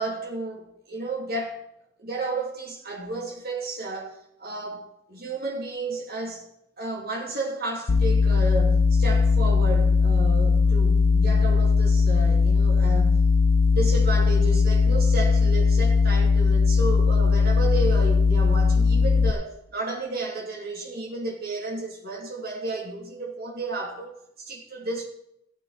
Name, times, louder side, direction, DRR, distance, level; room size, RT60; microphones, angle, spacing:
voice 1, 0.0-1.7 2.0-4.8 5.1-6.4 6.8-13.2 13.7-25.0, right 2 dB, 45° right, 2.9 m, -32 dB
sound 1, 7.9-19.3, left 4 dB, 85° left, 0.7 m, -19 dB
15.0 x 8.3 x 4.2 m
head